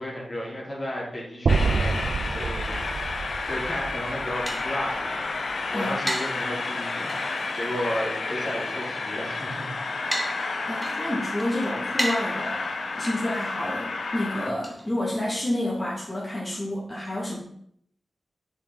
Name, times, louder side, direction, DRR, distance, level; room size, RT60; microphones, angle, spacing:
voice 1, 0.0-3.2 3.4-5.4 5.7-10.1, equal, 45° left, -5 dB, 3.3 m, -33 dB
Train, 1.5-14.5, left 3 dB, 75° left, 0.8 m, -31 dB
sound 1, 1.5-5.6, right 4 dB, 80° right, 0.4 m, -28 dB
sound 2, 3.9-15.5, right 1 dB, 15° right, 1.0 m, -37 dB
voice 2, 10.6-12.7 13.0-17.4, left 1 dB, 15° left, -6 dB, 2.6 m, -29 dB
6.5 x 6.1 x 4.1 m, 0.69 s
cardioid pair, 60°, 0 cm